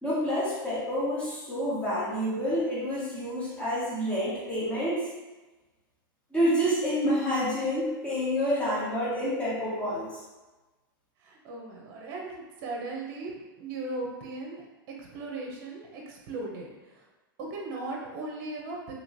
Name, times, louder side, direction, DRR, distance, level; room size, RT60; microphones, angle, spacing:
voice 1, 0.0-5.1 6.3-10.2, equal, 10° left, -9 dB, 1.4 m, -28 dB
voice 2, 11.2-13.3 13.6-17.1 17.5-18.9, right 2 dB, 55° right, -1 dB, 0.7 m, -38 dB
3.0 x 2.9 x 2.6 m, 1.2 s
hypercardioid pair, 110°, 12 cm